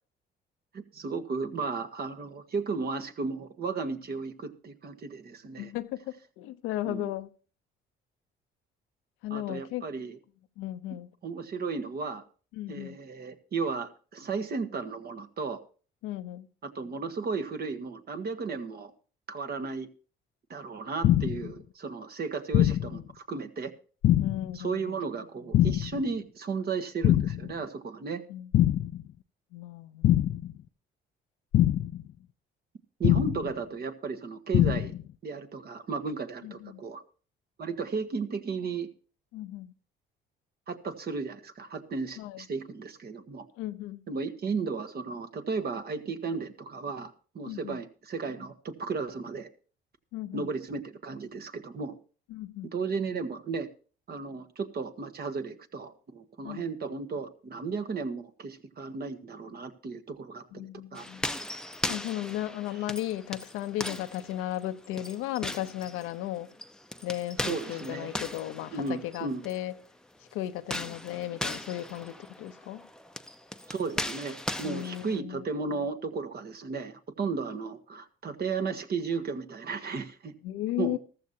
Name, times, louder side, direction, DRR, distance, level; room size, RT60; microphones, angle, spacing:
voice 1, 0.7-5.7 6.8-7.1 9.3-10.2 11.2-12.2 12.7-15.6 16.6-18.9 19.3-19.9 20.5-23.7 24.5-28.2 33.0-34.9 35.2-37.0 37.6-38.9 40.7-43.5 44.1-49.5 50.3-52.0 52.7-53.7 54.1-60.7 60.9-61.0 67.5-68.1 68.7-69.4 73.7-80.3 80.8-81.0, right 4 dB, 50° right, 1.5 m, -34 dB
voice 2, 5.6-7.3 9.2-9.9 10.6-11.1 12.5-12.9 16.0-16.5 24.2-25.0 28.3-28.5 29.5-30.4 36.4-36.8 39.3-39.7 42.2-42.4 43.5-44.0 47.4-47.8 50.1-50.5 52.3-52.7 56.4-56.6 60.5-61.4 61.9-66.5 67.0-69.7 70.3-72.8 74.6-75.5 75.7-75.8 80.4-81.0, left 14 dB, 90° left, 0.8 m, -35 dB
sound 1, 21.0-21.5 22.5-23.0 24.0-24.5 25.5-26.0 27.0-27.5 28.5-29.0 30.0-30.5 31.5-32.0 33.0-33.5 34.5-35.0, left 12 dB, 55° left, 0.5 m, -23 dB
sound 2, 61.0-69.6 70.6-75.2, left 1 dB, 5° left, 0.7 m, -38 dB
14.5 x 13.5 x 2.8 m
supercardioid pair, 80°, 21 cm